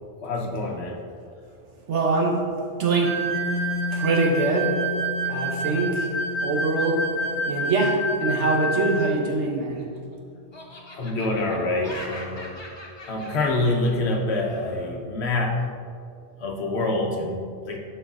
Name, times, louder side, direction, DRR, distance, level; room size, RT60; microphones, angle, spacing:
voice 1, 0.2-1.0 10.9-12.6 13.0-15.6 16.4-17.8, left 2 dB, 60° left, 1 dB, 1.0 m, -26 dB
voice 2, 1.9-2.5 2.8-3.2 3.9-4.8 5.3-6.1 6.4-7.2 7.5-9.9, right 3 dB, 70° right, 1 dB, 1.2 m, -23 dB
sound 1, 3.0-9.1, right 1 dB, 30° right, 1.2 m, -29 dB
Mallet percussion, 3.3-10.8, left 5 dB, 85° left, 0.3 m, -35 dB
Laughter, 9.4-10.1 10.5-14.9, left 1 dB, 30° left, 0.6 m, -42 dB
11.0 x 4.7 x 2.4 m, 2.3 s
omnidirectional pair, 1.3 m